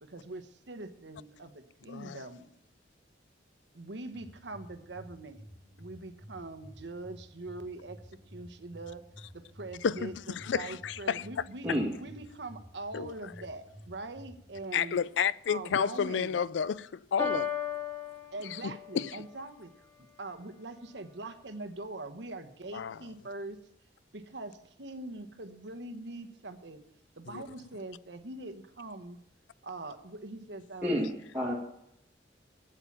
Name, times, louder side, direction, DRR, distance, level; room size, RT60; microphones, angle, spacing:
voice 1, 0.0-2.5 3.7-5.4 5.8-9.0 9.3-11.7 12.0-15.0 15.5-16.4 18.3-19.9 20.2-23.6 24.1-26.8 27.2-29.2 29.6-31.1, right 2 dB, 75° right, 1.1 m, -43 dB
sound 1, 4.1-14.6, equal, 35° left, 3.0 m, -52 dB
voice 2, 9.8-11.3 12.9-13.1 14.7-17.5 18.5-19.2 22.7-23.0 27.3-27.4, left 7 dB, 85° left, 0.4 m, -31 dB
Piano, 17.2-19.2, left 6 dB, 15° left, 1.9 m, -35 dB
voice 3, 30.8-31.5, equal, 10° right, 1.8 m, -30 dB
8.9 x 8.5 x 8.7 m
head